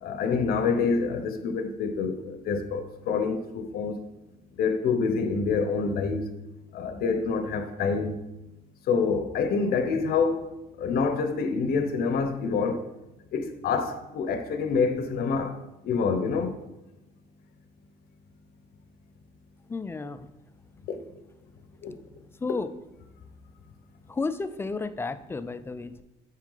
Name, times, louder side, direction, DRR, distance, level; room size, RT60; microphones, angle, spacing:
voice 1, 0.0-4.0 4.5-6.3 6.7-8.2 8.9-10.4 10.8-12.8 13.3-15.6 15.8-16.6 20.9-21.0 21.8-21.9, left 5 dB, 65° left, 0.7 m, -27 dB
voice 2, 19.7-20.3 22.4-22.7 24.1-26.0, left 3 dB, 15° left, 0.3 m, -32 dB
6.1 x 4.5 x 3.8 m
cardioid pair, 110°, 17 cm